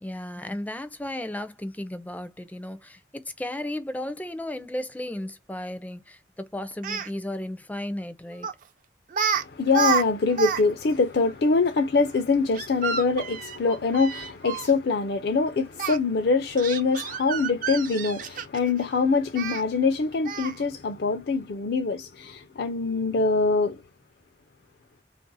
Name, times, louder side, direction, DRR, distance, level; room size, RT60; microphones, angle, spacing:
voice 1, 0.0-8.5, left 1 dB, 10° left, 0.4 m, -34 dB
Speech, 6.7-7.1 8.4-8.6 9.1-9.4 9.7-10.6 10.9-11.0 12.5-14.7 15.8-16.0 16.6-18.7 19.4-19.6 20.3-20.6, right 6 dB, 50° right, 0.5 m, -29 dB
voice 2, 9.3-23.8, left 4 dB, 60° left, 0.5 m, -24 dB
3.3 x 2.5 x 3.9 m
head